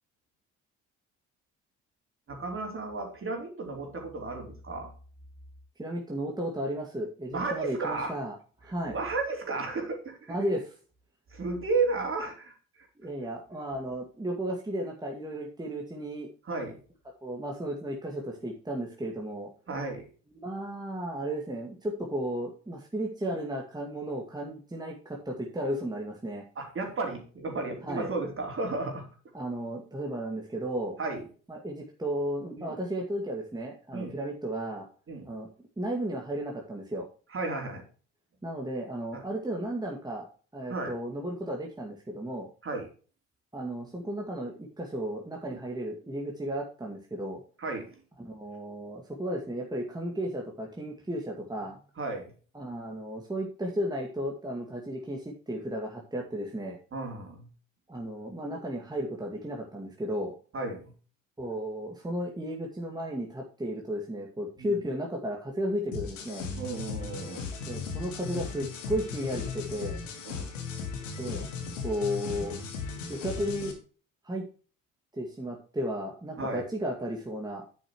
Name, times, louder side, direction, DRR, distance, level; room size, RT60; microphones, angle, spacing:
voice 1, 2.3-4.9 7.3-8.1 8.9-10.3 11.3-12.5 16.5-16.8 19.7-20.0 26.6-29.1 31.0-31.2 32.6-32.8 33.9-34.1 35.1-35.3 37.3-37.8 39.1-39.2 40.7-40.9 42.6-42.9 45.5-45.6 47.6-47.9 52.0-52.3 56.9-57.5 60.5-60.8 64.6-64.8 66.6-67.5 70.3-70.5 76.4-76.6, right 3 dB, 35° right, 2 dB, 3.6 m, -33 dB
voice 2, 5.8-9.0 10.3-10.7 13.0-16.3 17.2-19.5 20.4-26.4 27.8-28.1 29.3-31.0 31.5-34.9 35.3-35.5 35.8-37.1 38.4-40.2 40.5-42.5 43.5-47.4 48.2-51.8 52.5-56.8 57.9-60.3 61.4-66.5 67.7-70.0 71.2-71.5 71.8-72.6 73.1-73.7 74.2-74.4 75.1-77.7, equal, 10° right, -1 dB, 2.0 m, -34 dB
sound 1, 65.9-73.7, left 5 dB, 80° left, 1.9 m, -37 dB
10.0 x 8.4 x 3.0 m, 0.38 s
figure-of-eight pair, 50°, 38 cm